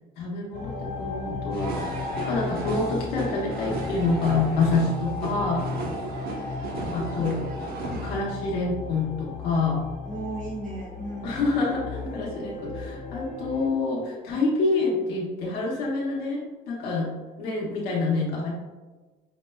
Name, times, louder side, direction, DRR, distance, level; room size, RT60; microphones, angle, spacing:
voice 1, 0.2-5.7 6.9-7.4 8.0-9.9 11.2-17.1 17.4-18.5, left 3 dB, 90° left, -4 dB, 0.8 m, -27 dB
sound 1, 0.5-13.7, left 4 dB, 60° left, 1.2 m, -35 dB
sound 2, 1.5-8.2, right 3 dB, 65° right, 0.7 m, -35 dB
voice 2, 6.0-6.4 6.9-7.5 7.8-8.1 10.0-11.3 11.9-12.5, right 2 dB, 45° right, -3 dB, 1.2 m, -37 dB
5.1 x 2.1 x 2.2 m, 1.3 s
cardioid pair, 110°, 17 cm